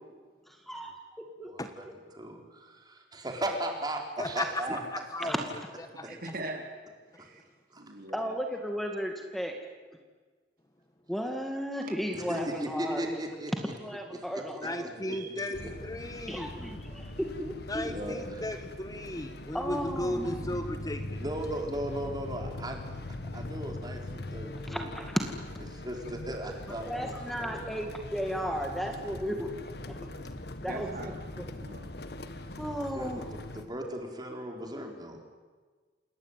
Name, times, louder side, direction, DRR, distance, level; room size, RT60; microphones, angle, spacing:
voice 1, 0.5-1.9 5.2-5.4 8.1-9.6 11.1-13.1 13.6-15.0 16.3-17.9 19.5-20.6 24.7-25.2 26.7-30.1 30.6-30.9 31.4-31.5 32.6-33.3, equal, ahead, 3 dB, 2.2 m, -35 dB
voice 2, 1.4-5.3 7.7-7.8 12.1-13.7 14.1-15.7 17.8-18.5 21.2-22.9 23.3-24.9 25.7-27.7 32.9-33.1 33.5-35.2, right 1 dB, 25° right, 2 dB, 4.8 m, -37 dB
voice 3, 4.9-5.3 6.0-6.1 14.6-16.5 17.7-21.2, left 1 dB, 20° left, 8 dB, 1.4 m, -35 dB
voice 4, 6.0-6.7 7.2-7.4 7.8-8.4 15.1-15.4 30.7-31.2 31.6-31.9, right 2 dB, 55° right, 3 dB, 4.1 m, -41 dB
sound 1, 15.5-33.6, left 1 dB, 65° left, 1.8 m, -41 dB
28.0 x 20.5 x 9.3 m, 1.4 s
head